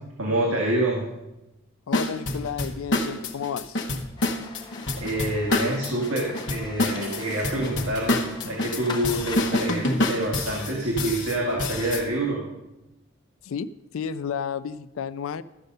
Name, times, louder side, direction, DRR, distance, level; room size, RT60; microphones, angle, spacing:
voice 1, 0.2-1.1 4.7-12.4, right 1 dB, 80° right, -2 dB, 1.9 m, -27 dB
voice 2, 1.9-3.8 13.4-13.7 13.9-15.4, left 7 dB, 75° left, 15 dB, 0.4 m, -32 dB
sound 1, 1.9-12.0, left 2 dB, 60° left, 1.1 m, -27 dB
sound 2, 4.2-9.5, left 4 dB, 20° left, 0.6 m, -42 dB
sound 3, 7.0-7.6 7.9-8.1 10.4-11.1 11.6-11.8, right 1 dB, 35° right, 3.6 m, -44 dB
13.5 x 6.6 x 5.4 m, 0.97 s
head